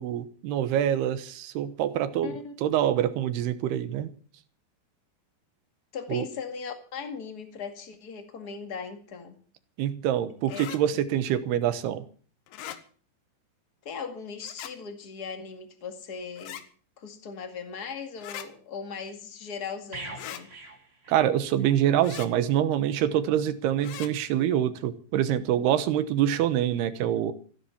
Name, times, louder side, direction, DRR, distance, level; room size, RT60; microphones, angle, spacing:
voice 1, 0.0-4.1 6.1-6.3 9.8-12.1 21.1-27.3, right 10 dB, 70° right, 2.8 m, -25 dB
voice 2, 2.2-2.5 5.9-9.4 10.5-10.6 13.8-16.6 17.0-20.5, left 6 dB, 45° left, 1.2 m, -38 dB
sound 1, 10.5-10.8 12.5-12.8 14.4-14.7 16.4-16.6 18.2-18.5 20.2-20.4 22.0-22.3 23.8-24.1, left 11 dB, 85° left, 3.6 m, -40 dB
sound 2, 19.9-21.8 22.1-22.3, right 2 dB, 25° right, 1.5 m, -43 dB
15.5 x 11.0 x 7.2 m
omnidirectional pair, 5.3 m